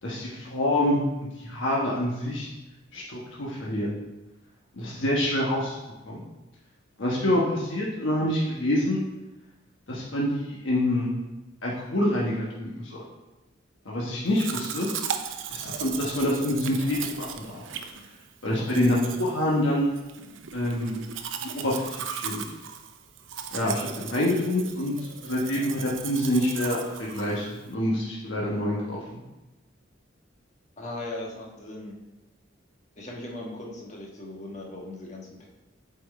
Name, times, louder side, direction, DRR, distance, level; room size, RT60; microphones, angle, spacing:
voice 1, 0.0-2.5 2.9-3.9 4.8-5.8 6.1-6.2 7.0-9.0 9.9-11.1 11.6-13.0 13.8-14.9 15.5-17.6 18.4-19.9 20.5-21.0 21.4-22.4 23.5-24.9 25.2-29.2, left 1 dB, 70° left, -5 dB, 1.3 m, -26 dB
Domestic sounds home sounds, 14.3-27.7, right 7 dB, 70° right, 0.6 m, -37 dB
voice 2, 30.8-32.0 33.0-35.5, left 1 dB, 35° left, -2 dB, 1.4 m, -38 dB
8.0 x 4.6 x 4.2 m, 1.0 s
head